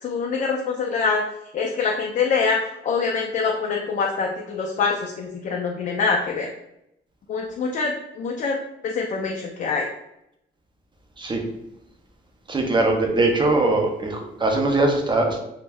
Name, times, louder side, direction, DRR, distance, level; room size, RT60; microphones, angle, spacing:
voice 1, 0.0-1.2 1.5-2.6 2.8-6.5 7.3-8.6 8.8-9.9, left 5 dB, 40° left, 0 dB, 0.4 m, -24 dB
voice 2, 12.5-15.4, right 2 dB, 25° right, 3 dB, 0.5 m, -21 dB
2.2 x 2.0 x 3.3 m, 0.82 s
cardioid pair, 90°, 20 cm